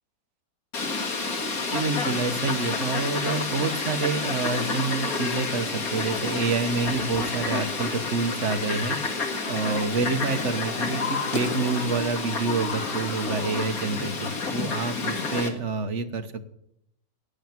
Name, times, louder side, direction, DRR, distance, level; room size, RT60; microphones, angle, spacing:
Fowl, 0.7-15.5, left 3 dB, 55° left, 2.2 m, -29 dB
voice 1, 1.7-16.4, right 4 dB, 50° right, 8 dB, 1.3 m, -28 dB
sound 1, 7.0-7.2 8.8-8.9 10.1-10.6 10.9-12.1 12.6-13.6 14.6-14.7, left 5 dB, 30° left, 2.2 m, -36 dB
12.0 x 8.9 x 9.5 m, 0.78 s
omnidirectional pair, 1.8 m